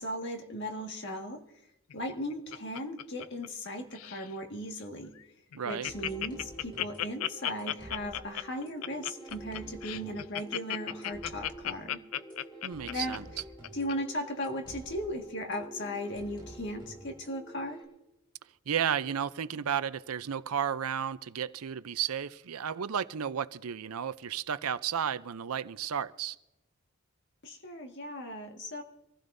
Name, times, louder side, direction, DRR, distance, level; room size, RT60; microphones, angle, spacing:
voice 1, 0.0-1.4 1.9-5.1 5.6-12.0 12.9-13.2 13.7-17.8 27.4-28.8, left 1 dB, 50° left, 1.8 m, -37 dB
Laughter, 1.9-3.7 3.9-4.3 4.8-4.9 5.2-5.3 5.5-13.9 14.4-14.5, left 12 dB, 75° left, 0.4 m, -35 dB
voice 2, 5.5-5.9 12.6-13.3 18.7-26.4, right 8 dB, 80° right, 0.6 m, -33 dB
sound 1, 5.8-17.8, right 1 dB, 20° left, 7.0 m, -48 dB
25.0 x 15.5 x 2.7 m
head